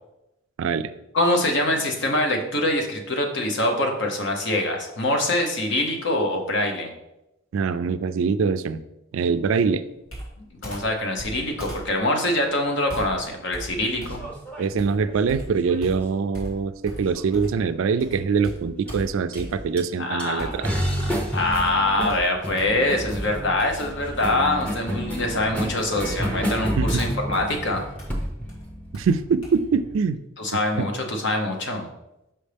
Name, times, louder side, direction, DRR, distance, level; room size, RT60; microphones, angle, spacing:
voice 1, 0.6-0.9 7.5-8.8 9.1-9.8 14.6-20.7 26.8-27.0 28.9-30.2 30.8-30.9, right 5 dB, 65° right, 13 dB, 0.3 m, -23 dB
voice 2, 1.1-6.9 10.4-14.3 20.0-20.6 21.0-27.8 30.4-31.9, left 1 dB, 55° left, 3 dB, 0.9 m, -24 dB
Computer keyboard, 10.1-17.7 18.0-19.9 20.4-21.1 21.5-29.5, equal, 75° left, 2.4 m, -40 dB
sound 1, 13.7-16.2 17.2-17.7 18.9-19.0 19.3-19.4 19.8-19.9 20.2-29.9, equal, 5° left, 0.8 m, -30 dB
5.7 x 5.3 x 3.4 m, 0.92 s
head